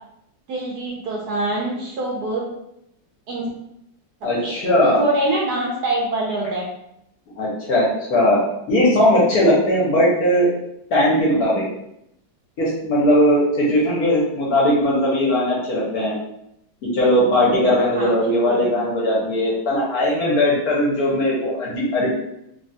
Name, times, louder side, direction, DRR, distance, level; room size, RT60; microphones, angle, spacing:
voice 1, 0.5-2.4 3.3-3.5 4.2-4.5 4.8-6.6 17.9-18.6, right 2 dB, 70° right, -3 dB, 1.0 m, -25 dB
voice 2, 4.2-5.0 7.4-8.4 8.7-10.5 10.9-11.6 12.6-16.1 16.9-22.1, left 1 dB, 60° left, -5 dB, 1.2 m, -18 dB
3.3 x 2.3 x 2.6 m, 0.79 s
omnidirectional pair, 2.0 m